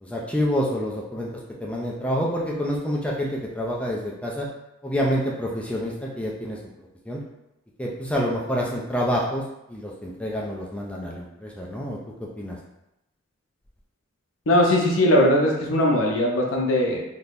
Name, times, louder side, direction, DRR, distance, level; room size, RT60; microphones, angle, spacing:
voice 1, 0.0-1.3 1.6-4.5 4.8-6.6 7.1-7.2 7.8-9.4 9.7-12.0 12.4-12.6, equal, 5° left, -3 dB, 0.3 m, -27 dB
voice 2, 14.5-17.0, left 1 dB, 70° left, 0 dB, 0.5 m, -20 dB
3.6 x 2.7 x 2.4 m, 0.89 s
head